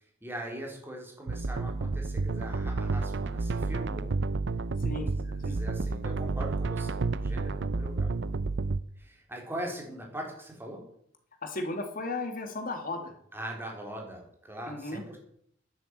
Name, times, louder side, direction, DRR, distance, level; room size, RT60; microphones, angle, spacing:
voice 1, 0.2-4.1 4.9-8.1 9.0-10.8 13.3-15.2, right 1 dB, 10° right, 0 dB, 4.0 m, -41 dB
sound 1, 1.3-8.8, right 3 dB, 60° right, 0.6 m, -30 dB
voice 2, 11.4-13.1 14.7-15.0, left 2 dB, 45° left, 5 dB, 2.5 m, -35 dB
11.0 x 9.6 x 8.3 m, 0.67 s
head